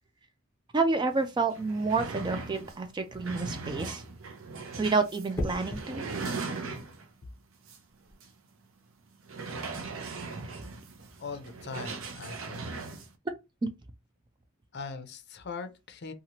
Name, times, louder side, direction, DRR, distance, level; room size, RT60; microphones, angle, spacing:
voice 1, 0.7-4.0 4.8-6.0, right 4 dB, 20° right, 0.3 m, -29 dB
sound 1, 1.1-1.2 1.5-7.2 7.7-7.8 8.2-8.3 9.2-13.1, right 3 dB, 65° right, 0.6 m, -39 dB
sound 2, 5.3-5.9 7.9-8.1, left 1 dB, 10° left, 0.8 m, -35 dB
voice 2, 11.2-12.8 14.7-16.1, left 5 dB, 50° left, 0.5 m, -41 dB
2.8 x 2.4 x 2.8 m
head